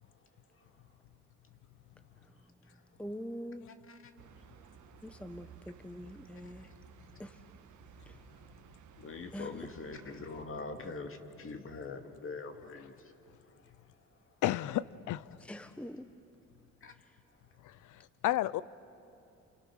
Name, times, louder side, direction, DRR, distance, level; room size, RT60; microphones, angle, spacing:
voice 1, 2.2-3.7 5.0-6.7 7.2-7.4 8.1-8.2 9.3-9.7 15.4-16.1 16.9-17.2, equal, 5° left, 0.9 m, -45 dB
sound 1, 4.2-10.4, right 6 dB, 75° right, 1.7 m, -56 dB
voice 2, 9.0-12.9 16.8-16.9, left 4 dB, 45° left, 2.5 m, -43 dB
voice 3, 14.4-15.2 17.6-17.7 18.2-18.6, left 14 dB, 80° left, 0.7 m, -31 dB
30.0 x 28.5 x 6.4 m
cardioid pair, 90°, 30 cm